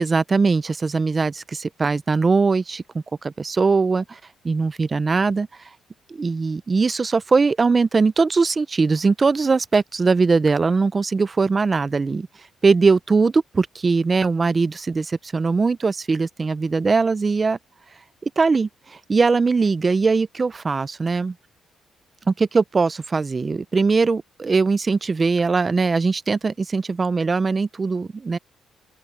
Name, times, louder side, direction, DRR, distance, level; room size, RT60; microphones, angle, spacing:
voice 1, 0.0-4.2 4.4-5.5 6.1-12.3 12.6-17.6 18.2-21.3 22.3-28.4, right 4 dB, 30° right, 0.7 m, -20 dB
open air
cardioid pair, 90°, 0 cm